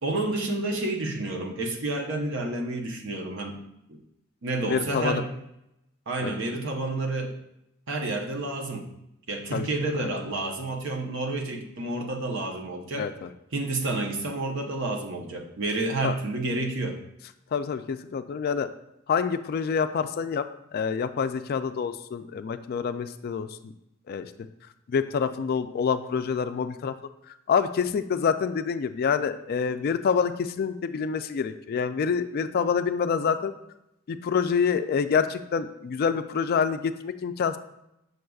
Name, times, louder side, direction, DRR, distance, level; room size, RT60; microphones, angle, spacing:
voice 1, 0.0-3.6 3.9-4.0 4.4-5.3 6.1-7.4 7.9-8.9 9.3-13.1 13.5-17.0, right 2 dB, 65° right, 3 dB, 0.8 m, -30 dB
voice 2, 4.7-5.2 6.2-6.3 9.5-9.7 13.0-13.3 16.0-16.1 17.5-18.7 19.1-20.5 20.7-23.7 24.1-24.3 24.9-26.9 27.5-33.5 34.1-37.6, left 6 dB, 50° left, 10 dB, 0.3 m, -27 dB
6.5 x 6.4 x 2.3 m, 0.84 s
head